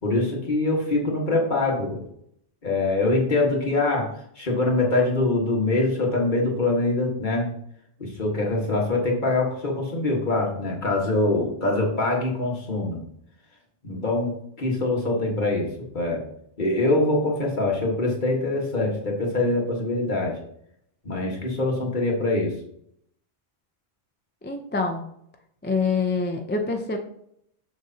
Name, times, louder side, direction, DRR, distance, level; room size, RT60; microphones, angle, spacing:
voice 1, 0.0-2.0 2.6-4.1 4.4-7.5 8.0-13.0 13.8-15.7 15.9-16.2 16.6-20.4 21.0-22.5, left 2 dB, 45° left, -1 dB, 1.6 m, -24 dB
voice 2, 24.4-25.0 25.6-27.0, left 4 dB, 15° left, 4 dB, 0.4 m, -25 dB
6.4 x 6.1 x 2.7 m, 0.71 s
omnidirectional pair, 1.1 m